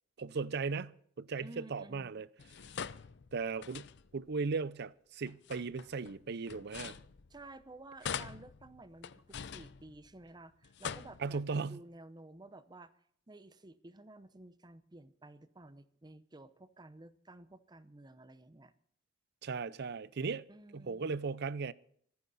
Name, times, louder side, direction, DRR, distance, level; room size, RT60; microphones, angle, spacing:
voice 1, 0.2-2.3 3.3-7.0 11.2-11.8 19.4-20.4 20.7-21.7, right 4 dB, 55° right, 0.6 m, -37 dB
voice 2, 1.4-2.2 7.3-12.9 13.3-18.7 20.5-21.2, right 2 dB, 20° right, 0.8 m, -53 dB
sound 1, 2.4-4.3 5.2-7.6 8.0-10.3 10.6-11.6, left 7 dB, 60° left, 0.6 m, -44 dB
25.0 x 9.6 x 4.1 m
head